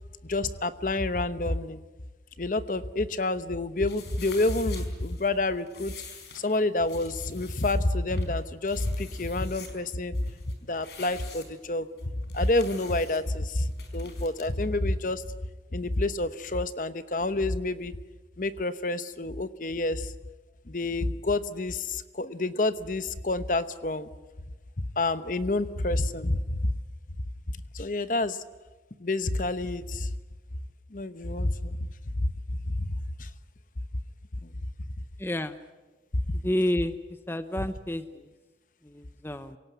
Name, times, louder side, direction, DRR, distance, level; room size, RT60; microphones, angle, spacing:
voice 1, 0.2-1.8 2.4-5.9 6.3-10.2 10.7-11.9 12.3-15.2 15.7-17.9 18.4-20.1 20.7-24.1 25.0-26.7 27.7-28.4 29.0-30.1 30.9-31.9 32.2-32.3 32.8-33.3 34.4-34.5 36.3-36.4, left 2 dB, 45° left, 12 dB, 0.9 m, -28 dB
sound 1, 3.8-14.5, left 5 dB, 70° left, 4.6 m, -48 dB
voice 2, 35.2-35.6 36.4-37.0 37.3-38.3 38.8-39.6, left 1 dB, 15° left, 11 dB, 0.8 m, -30 dB
27.0 x 18.0 x 9.3 m, 1.2 s
head